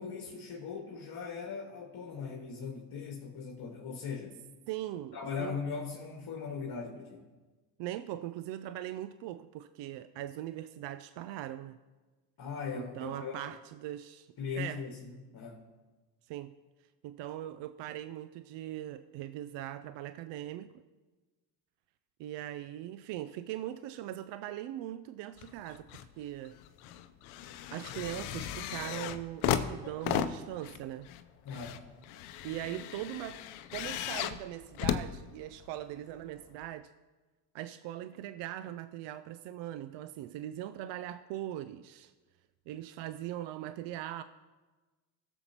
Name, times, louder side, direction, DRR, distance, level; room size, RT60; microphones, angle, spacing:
voice 1, 0.0-4.4 5.1-7.2 12.4-13.5 14.4-15.7 31.4-31.9, left 5 dB, 50° left, 1.7 m, -39 dB
voice 2, 4.7-5.6 7.8-11.8 12.7-14.3 14.5-14.8 16.2-16.6 17.0-20.7 22.2-26.6 27.7-31.1 32.4-33.4 33.7-36.9 37.5-42.1 42.7-44.2, right 13 dB, 60° right, 0.5 m, -40 dB
sound 1, 25.4-26.1 26.4-35.8 36.6-36.7, left 10 dB, 75° left, 0.8 m, -36 dB
17.5 x 7.1 x 2.9 m
supercardioid pair, 75°, 48 cm